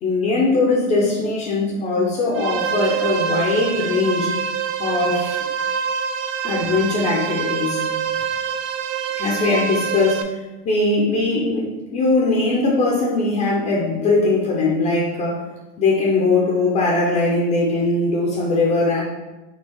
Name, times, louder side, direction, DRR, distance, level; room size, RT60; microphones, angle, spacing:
voice 1, 0.0-4.3 4.8-5.4 6.4-7.8 9.2-10.2 10.6-11.6 11.9-15.4 15.8-19.0, left 3 dB, 15° left, -4 dB, 0.3 m, -20 dB
sound 1, 2.3-10.2, right 7 dB, 80° right, 0.6 m, -25 dB
4.6 x 2.8 x 4.2 m, 1.1 s
supercardioid pair, 160°, 39 cm